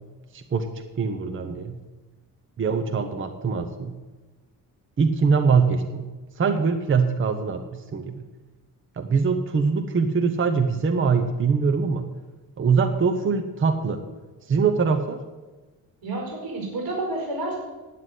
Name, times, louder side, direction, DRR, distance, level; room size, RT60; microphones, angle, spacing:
voice 1, 0.3-0.7 1.0-1.8 2.6-4.0 5.0-6.0 6.4-8.2 9.0-12.1 12.6-14.0 14.5-15.2, right 5 dB, 30° right, 7 dB, 0.8 m, -23 dB
voice 2, 16.0-17.6, right 2 dB, 65° right, -1 dB, 5.0 m, -29 dB
9.4 x 8.3 x 9.3 m, 1.2 s
wide cardioid pair, 150°, 38 cm